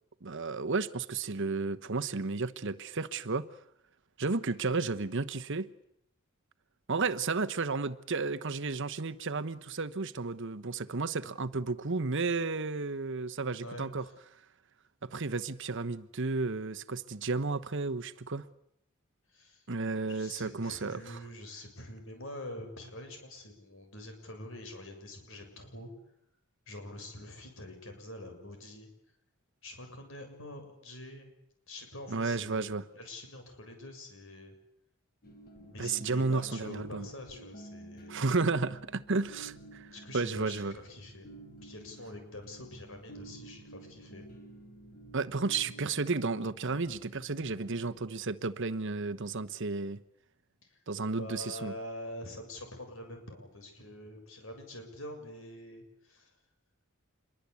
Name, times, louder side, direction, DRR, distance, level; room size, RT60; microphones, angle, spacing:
voice 1, 0.2-3.5 4.2-5.7 6.9-14.0 15.0-18.5 19.7-21.2 32.1-32.8 35.8-37.1 38.1-40.7 45.1-50.0 50.9-51.7, right 3 dB, 60° right, 1.0 m, -33 dB
voice 2, 13.4-14.1 19.3-19.6 20.1-25.9 26.7-28.9 29.6-31.3 31.7-34.5 35.6-38.3 39.9-41.3 41.6-44.3 50.7-50.8 51.2-56.3, left 1 dB, 65° left, 7.2 m, -45 dB
sound 1, 35.2-48.1, right 2 dB, 45° left, 4.2 m, -51 dB
26.5 x 22.5 x 8.4 m
head